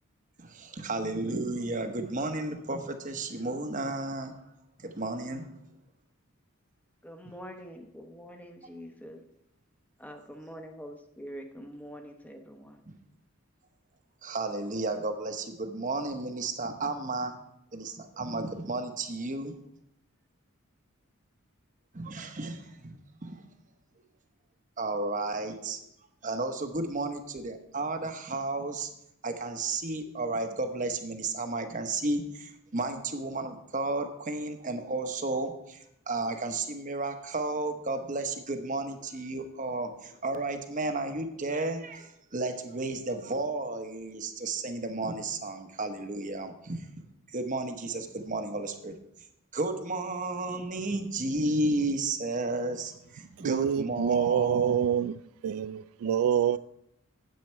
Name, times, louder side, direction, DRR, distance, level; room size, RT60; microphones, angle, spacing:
voice 1, 0.4-4.4 4.8-5.6 12.9-13.0 14.2-17.4 17.7-19.5 21.9-23.0 23.2-23.4 24.8-25.8 26.2-28.9 29.2-46.9 47.3-49.3 49.5-54.9 56.0-56.4, right 2 dB, 35° right, 1.0 m, -33 dB
voice 2, 7.0-9.2 10.0-12.8, equal, 5° left, 0.9 m, -45 dB
voice 3, 53.4-56.6, right 9 dB, 85° right, 0.3 m, -27 dB
9.5 x 8.5 x 4.5 m
head